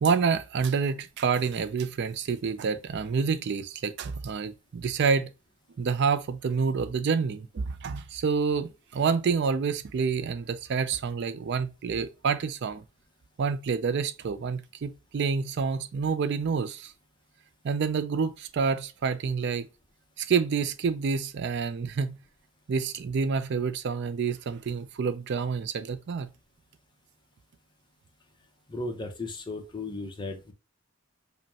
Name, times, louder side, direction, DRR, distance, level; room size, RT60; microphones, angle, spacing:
voice 1, 0.0-5.3 5.8-12.8 13.4-16.9 17.6-19.7 20.2-22.2 22.7-26.3, right 5 dB, 60° right, 0.4 m, -28 dB
voice 2, 28.7-30.5, left 2 dB, 25° left, 0.7 m, -35 dB
5.1 x 2.2 x 2.7 m
head